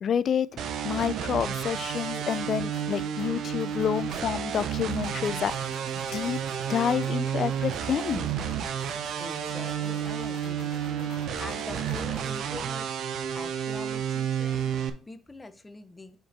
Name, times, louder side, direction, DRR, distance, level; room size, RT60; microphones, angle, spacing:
voice 1, 0.0-0.5 0.8-5.7 6.1-6.4 6.7-8.3, left 8 dB, 50° left, 0.3 m, -28 dB
sound 1, 0.6-14.9, right 8 dB, 65° right, 0.7 m, -31 dB
sound 2, 1.4-12.4, left 5 dB, 70° left, 1.2 m, -49 dB
voice 2, 8.8-12.9 13.3-16.2, left 2 dB, 15° left, 0.7 m, -44 dB
5.1 x 5.1 x 4.3 m
cardioid pair, 120°, 0 cm